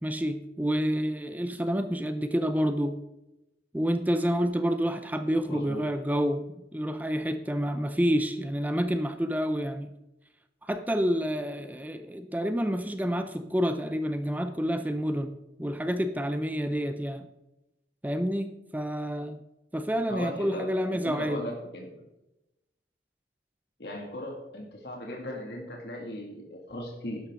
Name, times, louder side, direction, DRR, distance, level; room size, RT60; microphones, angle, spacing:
voice 1, 0.0-3.0 3.7-9.9 10.7-17.3 18.0-19.4 19.7-21.4, equal, 10° right, 9 dB, 0.5 m, -28 dB
voice 2, 5.5-6.0 20.1-22.0 23.8-27.2, left 1 dB, 65° left, -1 dB, 2.3 m, -38 dB
12.0 x 11.5 x 3.8 m, 0.93 s
head